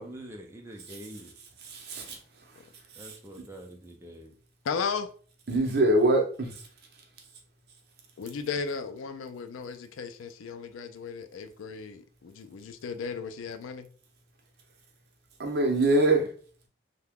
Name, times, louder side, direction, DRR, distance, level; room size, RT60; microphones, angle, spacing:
voice 1, 0.0-1.3 3.0-4.3, equal, 15° right, 0.4 m, -45 dB
voice 2, 1.6-2.2 3.0-3.1 5.5-6.5 15.4-16.3, right 2 dB, 55° right, 0.7 m, -24 dB
voice 3, 4.6-5.1 8.2-13.9, left 5 dB, 85° left, 0.4 m, -35 dB
2.8 x 2.2 x 3.5 m
head